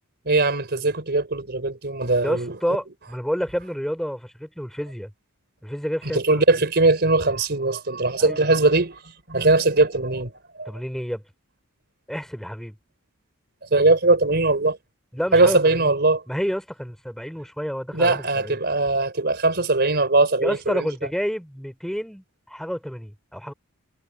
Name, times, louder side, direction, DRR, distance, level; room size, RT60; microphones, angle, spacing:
voice 1, 0.3-2.5 6.1-9.0 9.3-10.3 10.6-10.7 13.7-14.8 15.3-16.2 17.9-20.9, right 2 dB, 50° right, 4.1 m, -20 dB
voice 2, 2.2-5.1 5.6-6.4 8.2-8.5 10.7-11.2 12.1-12.8 15.1-15.9 16.3-18.6 20.4-23.5, equal, ahead, 3.6 m, -29 dB
head